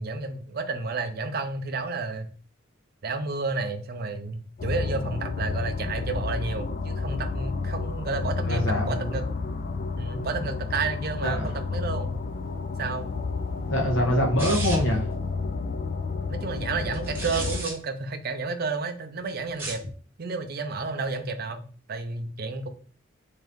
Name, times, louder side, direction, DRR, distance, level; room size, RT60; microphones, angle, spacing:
voice 1, 0.0-2.3 3.0-9.3 10.0-12.2 12.8-13.1 16.3-19.8 20.2-21.6 21.9-22.7, right 4 dB, 50° right, 0.5 m, -31 dB
sound 1, 4.6-17.6, left 4 dB, 40° left, 0.3 m, -30 dB
voice 2, 8.4-9.1 11.2-11.5 13.6-15.1, equal, 65° left, 1.2 m, -25 dB
sound 2, 14.4-15.0 16.9-17.7 19.5-19.9, right 2 dB, 10° right, 0.9 m, -34 dB
3.6 x 2.7 x 3.4 m
head